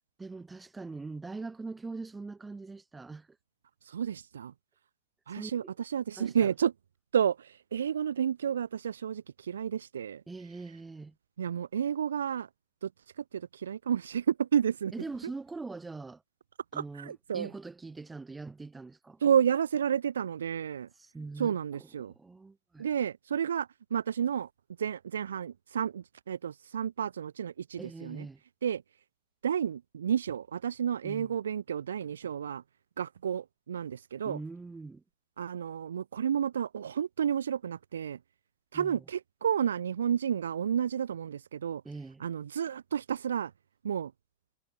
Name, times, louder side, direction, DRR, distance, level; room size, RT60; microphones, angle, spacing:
voice 1, 0.2-3.3 5.3-5.7 6.2-6.5 10.3-11.1 14.9-16.2 16.7-19.2 21.0-22.9 27.8-28.4 31.0-31.3 34.2-35.0 38.7-39.0 41.8-42.2, right 3 dB, 10° right, 2.6 m, -42 dB
voice 2, 3.9-4.5 5.3-6.7 7.1-10.2 11.4-12.5 12.8-12.9 13.2-14.9 16.7-17.5 19.2-20.9 21.4-22.1 22.8-24.5 24.8-28.3 28.6-28.8 29.4-32.6 33.0-34.4 35.4-38.2 38.7-41.8 42.2-43.5 43.8-44.1, right 8 dB, 65° right, 0.6 m, -31 dB
figure-of-eight pair, 90°, 0 cm